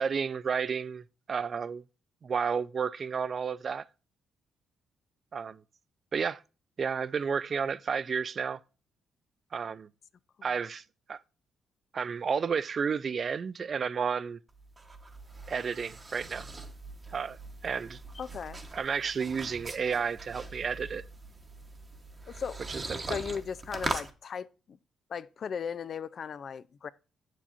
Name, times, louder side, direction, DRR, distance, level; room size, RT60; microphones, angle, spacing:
voice 1, 0.0-1.8 2.2-3.9 5.3-5.6 6.1-6.4 6.8-8.6 9.5-9.9 10.4-10.8 11.1-11.2 11.9-14.4 15.5-16.5 17.1-18.0 18.7-21.0 22.7-23.2, right 6 dB, 45° right, 0.4 m, -32 dB
sound 1, 14.5-24.1, right 2 dB, 25° right, 1.0 m, -41 dB
voice 2, 18.1-18.6 22.3-22.6 22.9-24.8 25.1-26.9, left 6 dB, 50° left, 0.4 m, -37 dB
7.3 x 6.9 x 2.5 m
cardioid pair, 90°, 0 cm